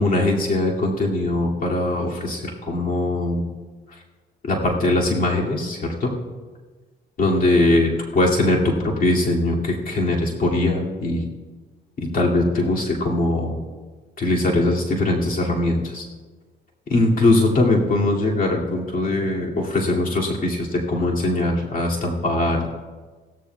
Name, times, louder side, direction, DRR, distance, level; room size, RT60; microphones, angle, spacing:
voice 1, 0.0-3.5 4.4-6.1 7.2-11.2 12.0-13.6 14.2-16.0 16.9-22.7, left 2 dB, 45° left, -3 dB, 2.5 m, -21 dB
17.0 x 14.0 x 2.4 m, 1.3 s
cardioid pair, 90°, 20 cm